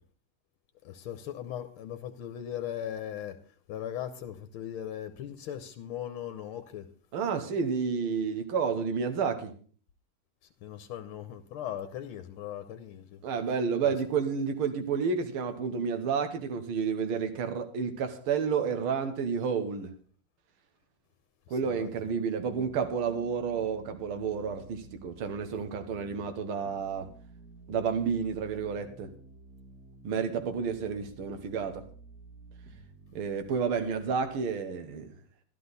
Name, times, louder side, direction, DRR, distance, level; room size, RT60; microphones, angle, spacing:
voice 1, 0.8-3.4 3.7-6.9 10.6-13.2 13.8-13.9 21.6-21.9, left 10 dB, 85° left, 1.7 m, -38 dB
voice 2, 7.1-9.5 13.2-19.9 21.5-27.1 27.7-29.1 30.0-31.9 33.2-35.1, right 6 dB, 85° right, 2.0 m, -30 dB
sound 1, 22.5-34.5, right 3 dB, 50° right, 2.1 m, -52 dB
13.0 x 11.5 x 4.0 m
omnidirectional pair, 2.3 m